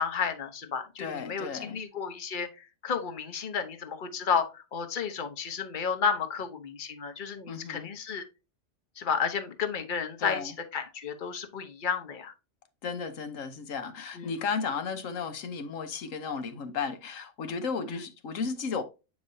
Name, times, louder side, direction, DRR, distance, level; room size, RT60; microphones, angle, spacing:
voice 1, 0.0-8.2 9.0-12.3 14.1-14.3 17.9-18.0, left 6 dB, 40° left, 1.0 m, -32 dB
voice 2, 1.0-1.8 7.5-7.9 10.2-10.5 12.8-18.8, left 5 dB, 70° left, 1.2 m, -34 dB
8.4 x 4.9 x 2.7 m
omnidirectional pair, 1.4 m